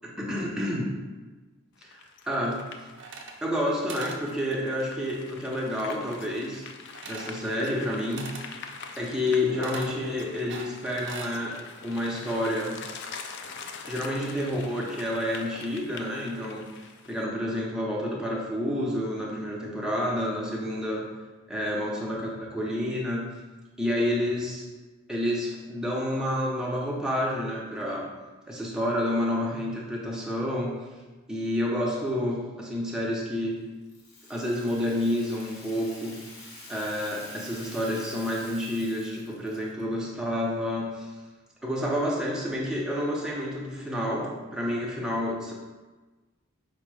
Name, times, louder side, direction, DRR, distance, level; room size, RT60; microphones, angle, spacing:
voice 1, 0.0-0.9 1.8-2.0 2.3-2.6 3.4-6.6 7.0-8.5 9.0-11.6 11.8-12.8 13.9-16.7 17.1-21.1 21.5-23.3 23.8-24.7 25.1-28.1 28.5-30.8 31.3-33.6 34.3-36.2 36.7-41.1 41.6-45.5, left 1 dB, 5° right, -4 dB, 0.6 m, -29 dB
sound 1, 1.8-17.2, left 5 dB, 50° left, 0.3 m, -43 dB
sound 2, 2.9-3.6 3.9-4.2 6.9-7.4 8.2-8.5 9.6-9.9 10.5-11.4, right 4 dB, 55° right, 0.5 m, -41 dB
Rattle (instrument), 33.9-39.8, left 2 dB, 80° left, 0.9 m, -47 dB
5.0 x 2.1 x 4.6 m, 1.3 s
head